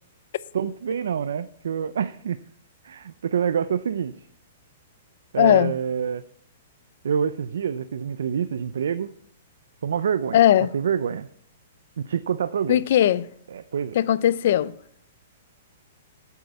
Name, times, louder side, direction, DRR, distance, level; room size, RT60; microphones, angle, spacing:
voice 1, 0.5-2.4 2.8-4.1 5.3-6.2 7.0-9.1 9.8-10.4 10.7-11.3 12.0-12.8 13.5-14.0, right 7 dB, 85° right, 0.5 m, -26 dB
voice 2, 5.4-5.7 10.3-10.7 12.7-13.3 13.9-14.7, left 11 dB, 50° left, 0.5 m, -18 dB
8.5 x 8.2 x 8.0 m
hypercardioid pair, 170°, 0 cm